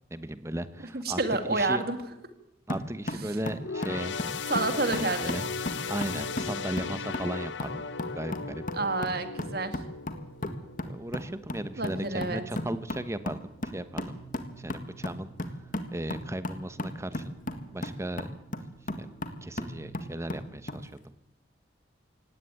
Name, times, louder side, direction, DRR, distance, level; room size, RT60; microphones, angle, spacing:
voice 1, 0.1-1.2 1.5-1.8 2.7-4.2 4.8-5.4 5.9-7.8 8.2-8.6 10.9-13.4 13.7-14.2 14.6-15.3 15.9-17.4 17.7-18.3 19.0-19.1 19.4-21.0, right 1 dB, 15° right, 13 dB, 1.1 m, -36 dB
voice 2, 0.9-2.0 3.2-3.4 4.5-5.4 8.7-9.8 11.8-12.4, right 3 dB, 55° right, 9 dB, 2.2 m, -29 dB
sound 1, 2.7-20.9, left 1 dB, 45° left, 1.8 m, -37 dB
sound 2, 3.6-11.3 11.7-11.9 12.8-12.9, left 5 dB, 75° left, 0.9 m, -36 dB
18.0 x 17.0 x 9.2 m, 0.87 s
head